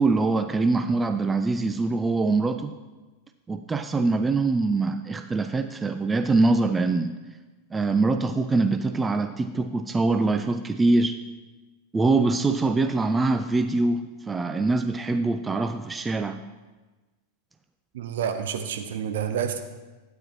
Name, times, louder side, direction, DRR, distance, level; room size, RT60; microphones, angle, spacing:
voice 1, 0.0-2.7 3.5-7.1 7.7-11.2 11.9-16.4, right 3 dB, 15° right, 8 dB, 0.4 m, -23 dB
voice 2, 17.9-19.6, right 8 dB, 55° right, 7 dB, 0.8 m, -29 dB
12.0 x 8.7 x 3.0 m, 1.2 s
figure-of-eight pair, 90°, 0 cm